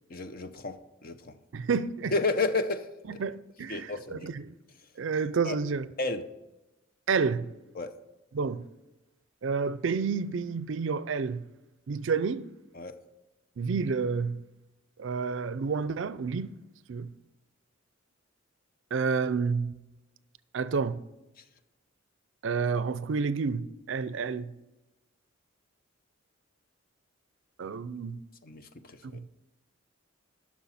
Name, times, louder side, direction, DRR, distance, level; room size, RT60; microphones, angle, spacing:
voice 1, 0.1-0.8 1.0-1.3 2.1-3.2 3.7-4.3 5.4-5.6 6.0-6.2 7.8-7.9 12.7-12.9 28.4-29.2, left 3 dB, 45° left, 0.6 m, -31 dB
voice 2, 1.5-2.1 3.1-4.5 5.0-5.9 7.1-7.5 8.3-8.6 9.4-11.4 11.9-12.5 13.6-14.4 15.0-16.5 16.9-17.1 18.9-19.7 20.5-21.0 22.4-24.5 27.6-28.2, right 5 dB, 65° right, 0.4 m, -29 dB
11.5 x 6.2 x 4.1 m
head